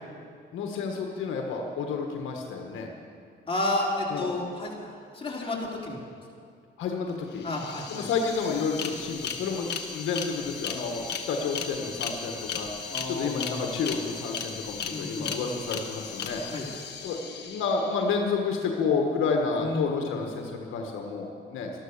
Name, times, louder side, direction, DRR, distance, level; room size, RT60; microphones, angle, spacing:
voice 1, 0.5-2.9 4.1-4.3 6.8-7.5 7.9-16.4 17.0-21.7, left 5 dB, 85° left, 2 dB, 1.5 m, -30 dB
voice 2, 3.5-6.0 7.4-8.1 12.9-13.7 14.9-15.5 16.5-16.6 19.6-20.2, left 2 dB, 25° left, -3 dB, 3.7 m, -32 dB
sound 1, 7.1-7.2 7.4-18.2, left 6 dB, 55° left, 1.5 m, -37 dB
13.0 x 13.0 x 6.7 m, 2.3 s
cardioid pair, 90°, 20 cm